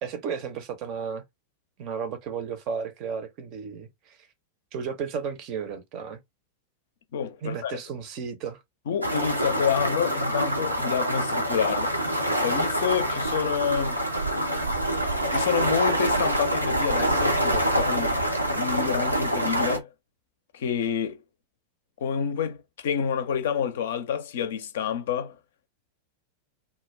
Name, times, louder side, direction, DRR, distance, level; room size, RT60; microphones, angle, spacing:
voice 1, 0.0-1.2 1.8-4.2 4.7-6.2 7.4-8.6, right 6 dB, 40° right, 0.6 m, -33 dB
voice 2, 7.1-7.8 8.9-12.1 12.4-14.0 15.3-18.1 18.6-19.9 20.5-21.2 22.0-25.4, left 8 dB, 60° left, 0.4 m, -28 dB
sound 1, 9.0-19.8, right 1 dB, 85° right, 0.6 m, -26 dB
2.2 x 2.1 x 3.2 m
figure-of-eight pair, 90°, 0 cm